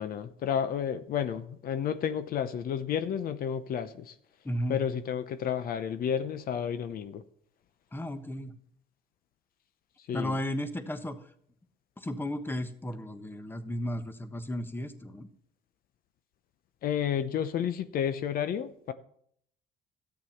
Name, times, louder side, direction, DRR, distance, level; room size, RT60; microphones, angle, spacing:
voice 1, 0.0-4.1 4.7-7.2 10.1-10.3 16.8-18.9, left 8 dB, 60° left, 11 dB, 0.9 m, -31 dB
voice 2, 4.4-4.8 7.9-8.5 10.1-11.2 12.0-15.3, equal, 10° left, 10 dB, 1.2 m, -34 dB
13.0 x 9.1 x 5.8 m, 0.65 s
cardioid pair, 110°, 17 cm